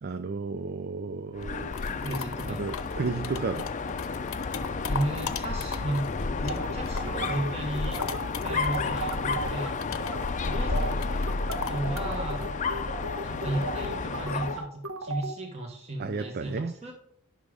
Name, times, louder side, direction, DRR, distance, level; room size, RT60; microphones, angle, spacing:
voice 1, 0.0-2.0 2.5-3.7 16.0-16.7, right 4 dB, 45° right, 0.5 m, -33 dB
sound 1, 1.4-7.3 7.6-13.9, left 6 dB, 65° left, 0.7 m, -39 dB
Dog, 1.4-14.7, left 4 dB, 35° left, 0.5 m, -32 dB
voice 2, 2.0-2.6 4.9-8.0 8.4-9.8 10.5-10.9 11.7-12.4 13.2-16.9, right 1 dB, 30° right, 1.3 m, -34 dB
sound 2, 6.5-9.7 10.0-10.2 10.5-15.3, right 2 dB, 75° right, 1.3 m, -35 dB
10.5 x 6.2 x 5.0 m
head